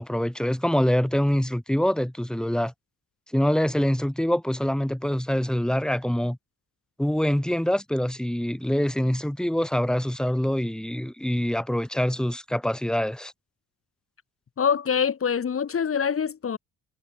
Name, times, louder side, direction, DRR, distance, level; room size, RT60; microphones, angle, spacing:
voice 1, 0.0-2.7 3.3-6.4 7.0-13.3, equal, ahead, 4.4 m, -25 dB
voice 2, 14.6-16.6, left 7 dB, 45° left, 5.3 m, -25 dB
cardioid pair, 90°, 30 cm